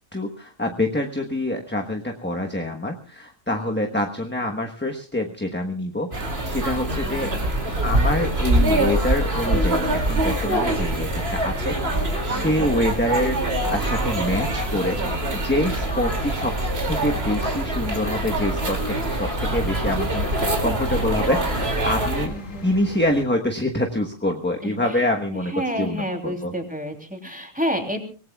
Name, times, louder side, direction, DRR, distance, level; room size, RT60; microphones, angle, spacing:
voice 1, 0.1-7.3 7.8-16.5 16.9-22.3 22.6-26.5, left 1 dB, 10° left, 2 dB, 1.1 m, -26 dB
voice 2, 3.5-4.0 7.0-7.4 12.3-12.7 22.2-22.7 24.6-25.1 25.4-28.1, equal, 5° right, 4 dB, 3.0 m, -30 dB
sound 1, 6.1-22.3, right 1 dB, 50° right, 3.0 m, -24 dB
sound 2, 7.1-23.3, left 2 dB, 80° left, 2.1 m, -39 dB
25.0 x 18.5 x 2.4 m, 0.37 s
omnidirectional pair, 1.3 m